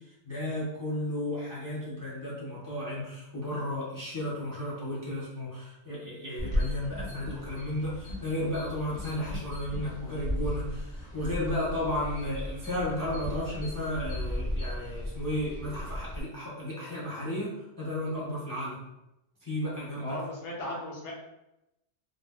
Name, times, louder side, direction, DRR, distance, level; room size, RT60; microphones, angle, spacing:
voice 1, 0.3-18.8 19.4-20.2, left 1 dB, 30° left, -6 dB, 0.4 m, -33 dB
sound 1, 6.4-16.2, left 1 dB, 45° left, 0.9 m, -36 dB
voice 2, 20.0-21.1, left 1 dB, 80° left, -4 dB, 1.2 m, -36 dB
2.6 x 2.0 x 3.5 m, 0.90 s
omnidirectional pair, 1.2 m